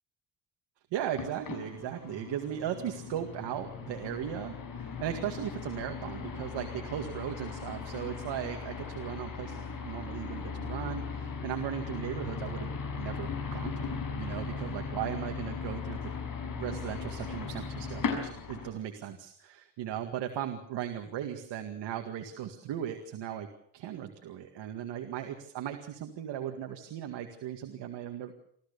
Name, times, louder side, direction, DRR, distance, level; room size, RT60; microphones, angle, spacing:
voice 1, 0.9-16.1 16.5-23.5 23.7-28.3, right 10 dB, 90° right, 5 dB, 2.1 m, -37 dB
sound 1, 1.1-18.7, left 5 dB, 50° left, 6.0 m, -38 dB
26.0 x 14.5 x 6.9 m, 0.68 s
cardioid pair, 130°, 41 cm